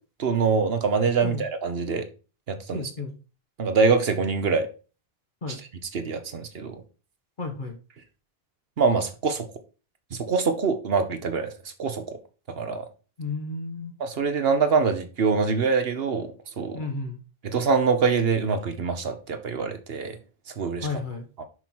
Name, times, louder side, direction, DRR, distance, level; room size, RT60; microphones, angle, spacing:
voice 1, 0.2-2.1 2.5-2.9 3.6-4.7 5.5-5.6 5.9-6.8 8.8-9.5 10.1-11.5 11.8-12.2 12.6-12.8 14.0-16.3 16.6-16.8 17.4-20.2 20.6-20.9 21.4-21.5, right 5 dB, 70° right, 1.2 m, -24 dB
voice 2, 2.7-3.2 5.4-5.6 7.4-7.8 13.2-13.9 16.7-17.2 20.8-21.3, left 3 dB, 50° left, 1.5 m, -32 dB
6.7 x 5.8 x 4.5 m
omnidirectional pair, 1.0 m